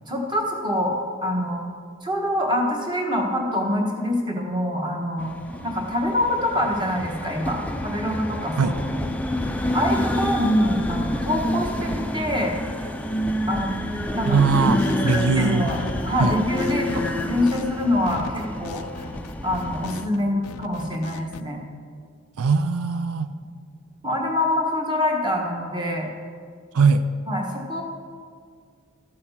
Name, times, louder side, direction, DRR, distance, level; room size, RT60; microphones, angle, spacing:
voice 1, 0.1-1.6 2.0-5.3 5.6-8.7 9.7-12.6 13.5-13.8 14.1-15.8 16.0-19.1 19.4-21.6 24.0-26.1 27.3-27.8, left 1 dB, 20° right, -1 dB, 1.4 m, -25 dB
sound 1, 5.2-20.1, equal, 5° left, 0.4 m, -28 dB
voice 2, 14.2-14.8 15.0-15.7 16.2-16.3 22.4-23.3 26.7-27.1, right 5 dB, 85° right, 10 dB, 0.5 m, -20 dB
sound 2, 14.5-20.2 20.4-21.4, left 5 dB, 80° left, 0.4 m, -39 dB
13.5 x 6.6 x 5.7 m, 2.1 s
head